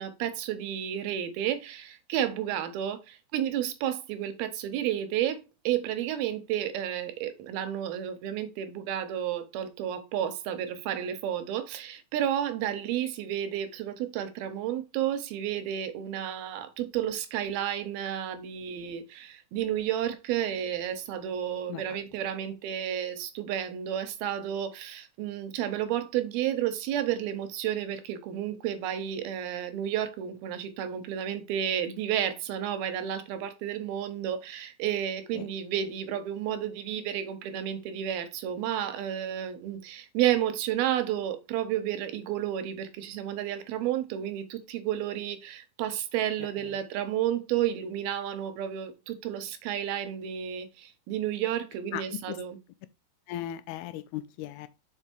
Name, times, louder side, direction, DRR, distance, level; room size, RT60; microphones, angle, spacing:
voice 1, 0.0-5.4 5.7-52.6, right 10 dB, 75° right, 2.5 m, -31 dB
voice 2, 46.4-46.8 51.9-52.4 53.3-54.7, left 12 dB, 80° left, 2.5 m, -38 dB
5.6 x 5.3 x 4.4 m
omnidirectional pair, 4.7 m